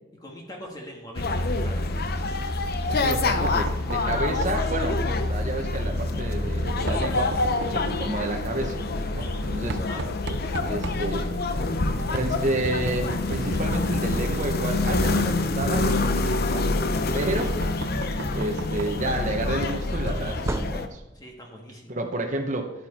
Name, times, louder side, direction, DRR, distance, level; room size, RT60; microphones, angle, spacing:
voice 1, 0.2-1.9 9.8-10.0 21.1-22.0, equal, 20° left, 0 dB, 1.8 m, -42 dB
sound 1, 1.1-20.9, left 2 dB, 55° left, 0.8 m, -26 dB
Knock, 2.6-21.0, right 3 dB, 65° right, 0.6 m, -38 dB
voice 2, 2.9-8.8 9.1-9.8 10.6-11.3 12.1-16.7 17.1-17.5 18.3-21.0 21.9-22.7, right 2 dB, 40° right, 2 dB, 1.1 m, -30 dB
sound 2, 17.4-18.4 20.1-21.3, right 2 dB, 15° right, 0.4 m, -36 dB
11.5 x 9.0 x 4.4 m, 1.0 s
head